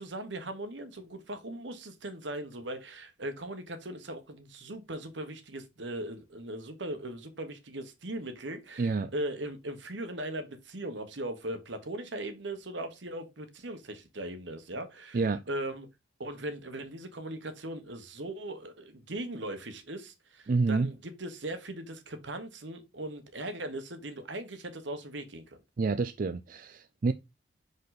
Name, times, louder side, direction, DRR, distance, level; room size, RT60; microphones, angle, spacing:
voice 1, 0.0-15.9 16.2-25.4, right 1 dB, 70° right, 1.4 m, -39 dB
voice 2, 8.8-9.1 15.1-15.4 20.5-20.9 25.8-27.1, right 4 dB, 45° right, 0.4 m, -28 dB
5.9 x 5.3 x 4.0 m
head